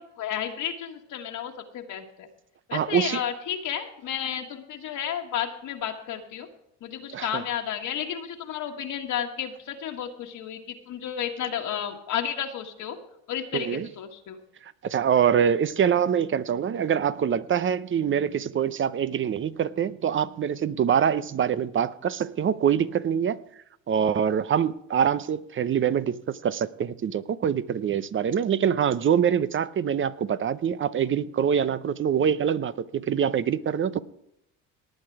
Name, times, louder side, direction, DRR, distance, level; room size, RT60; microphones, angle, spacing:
voice 1, 0.0-2.3 2.7-6.5 6.8-13.0 13.3-14.4, left 9 dB, 60° left, 1.7 m, -32 dB
voice 2, 2.7-3.2 7.1-7.4 13.5-13.9 14.6-23.4 23.9-34.0, right 8 dB, 35° right, 0.7 m, -25 dB
18.5 x 8.6 x 4.8 m
cardioid pair, 100°, 35 cm